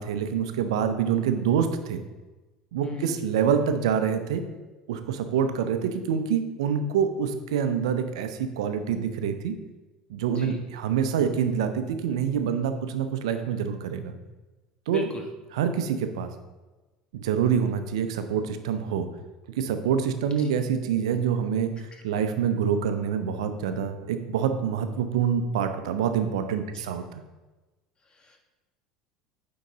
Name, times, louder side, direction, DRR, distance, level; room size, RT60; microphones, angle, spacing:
voice 1, 0.0-2.0 2.7-4.4 4.9-9.6 10.1-14.1 14.9-15.1 15.5-16.3 17.1-19.1 19.6-27.2, right 7 dB, 75° right, 8 dB, 0.6 m, -26 dB
voice 2, 2.8-3.2 10.3-10.6 14.9-15.3 20.2-20.3 26.7-26.8 28.1-28.4, left 2 dB, 30° left, 2 dB, 1.5 m, -38 dB
9.1 x 3.9 x 3.9 m, 1.2 s
hypercardioid pair, 75°, 3 cm